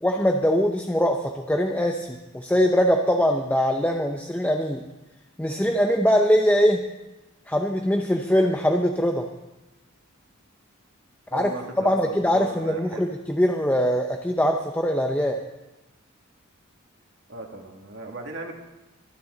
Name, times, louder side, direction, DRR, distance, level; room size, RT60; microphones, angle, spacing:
voice 1, 0.0-4.8 5.4-6.9 7.5-9.3 11.3-11.5 11.8-15.4, equal, 10° left, 3 dB, 0.7 m, -22 dB
voice 2, 11.3-13.1 17.3-18.5, right 2 dB, 60° right, 1 dB, 2.3 m, -37 dB
23.0 x 10.5 x 3.9 m, 1.0 s
head